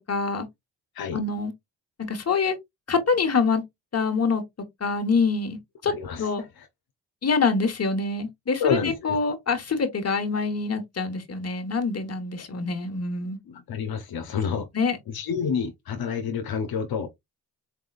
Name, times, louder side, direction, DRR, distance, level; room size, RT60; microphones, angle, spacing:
voice 1, 0.1-0.5 1.1-1.5 2.0-2.6 2.9-3.6 3.9-4.4 4.8-5.9 6.2-6.4 7.2-13.4 14.7-15.0, left 4 dB, 40° left, 1.4 m, -25 dB
voice 2, 5.9-6.3 6.6-6.7 8.6-9.2 13.5-14.7 15.1-17.1, left 6 dB, 70° left, 0.9 m, -28 dB
4.4 x 3.5 x 2.4 m
cardioid pair, 65°, 38 cm